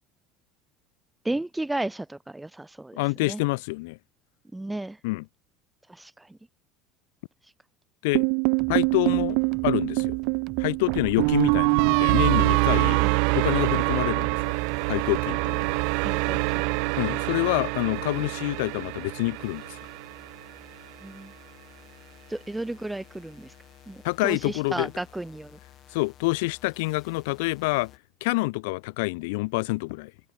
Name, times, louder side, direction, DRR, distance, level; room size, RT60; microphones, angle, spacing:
voice 1, 1.2-3.4 4.5-5.0 5.9-6.4 12.9-13.1 16.0-16.7 21.0-21.3 22.3-23.5 23.9-25.6, right 2 dB, 5° right, 6.6 m, -34 dB
voice 2, 3.0-4.0 5.0-5.2 8.0-8.3 8.7-10.2 10.6-13.0 13.3-14.4 14.9-15.6 17.0-19.8 24.0-24.9 25.9-27.9 28.2-30.1, left 25 dB, 90° left, 2.3 m, -27 dB
sound 1, 8.1-20.3, right 40 dB or more, 70° right, 1.8 m, -25 dB
sound 2, 8.6-16.1, right 16 dB, 45° right, 3.5 m, -43 dB
sound 3, 13.6-28.0, left 11 dB, 35° left, 7.9 m, -53 dB
cardioid pair, 160°, 0 cm